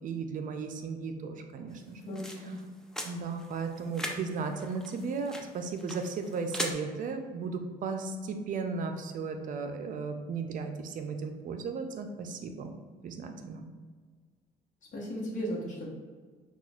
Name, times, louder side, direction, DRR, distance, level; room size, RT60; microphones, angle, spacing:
voice 1, 0.0-2.0 3.0-12.7 13.0-13.7, right 4 dB, 50° right, 6 dB, 0.5 m, -35 dB
sound 1, 1.7-6.7, equal, 5° left, 0.4 m, -41 dB
voice 2, 2.0-2.6 14.9-15.9, equal, 50° left, -5 dB, 1.1 m, -36 dB
5.8 x 2.4 x 2.4 m, 1.5 s
cardioid pair, 110°, 17 cm